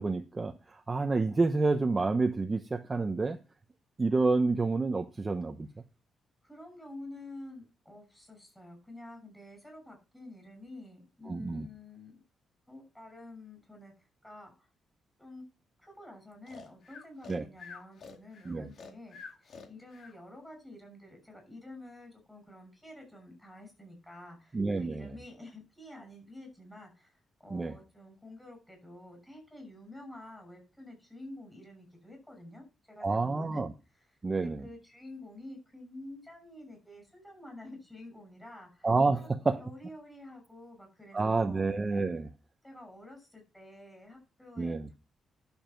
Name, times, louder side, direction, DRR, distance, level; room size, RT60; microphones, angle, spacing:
voice 1, 0.0-3.4 4.0-5.7 11.3-11.7 17.3-17.4 18.4-18.7 24.5-25.1 27.5-27.7 33.0-33.7 34.2-34.6 38.8-39.6 41.1-42.3 44.6-44.9, right 3 dB, 25° right, 5 dB, 0.9 m, -29 dB
voice 2, 6.4-12.2 12.7-13.9 14.2-14.7 15.2-15.4 15.8-33.6 34.6-39.3 39.6-41.7 42.6-44.9, left 1 dB, 5° left, 4 dB, 6.5 m, -49 dB
Breathing, 16.5-20.2, left 5 dB, 60° left, 2.2 m, -48 dB
11.5 x 7.2 x 4.5 m, 0.30 s
cardioid pair, 125°, 0 cm